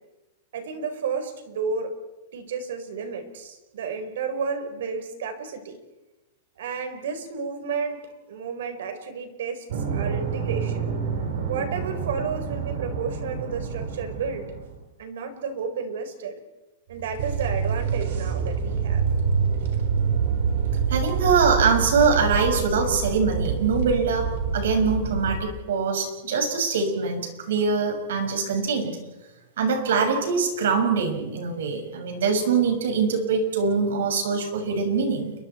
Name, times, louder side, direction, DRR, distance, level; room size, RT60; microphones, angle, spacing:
voice 1, 0.5-1.9 2.3-5.8 6.6-8.0 8.3-10.9 11.5-14.5 15.0-16.4 16.9-19.0, right 5 dB, 75° right, 7 dB, 4.8 m, -32 dB
sound 1, 9.7-14.8 16.9-25.4, right 6 dB, 60° right, 4.6 m, -27 dB
voice 2, 20.9-29.0 29.6-35.3, right 5 dB, 90° right, 5 dB, 6.3 m, -23 dB
30.0 x 23.5 x 4.6 m, 1.0 s
supercardioid pair, 175°, 0 cm